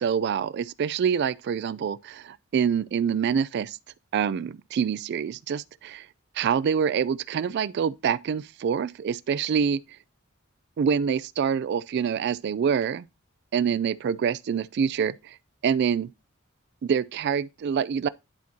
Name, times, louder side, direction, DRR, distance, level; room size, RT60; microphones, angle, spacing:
voice 1, 0.0-3.8 4.1-6.0 6.4-9.8 10.8-13.0 13.5-15.1 15.6-16.1 16.8-18.1, right 7 dB, 55° right, 0.3 m, -26 dB
10.5 x 4.5 x 2.7 m
head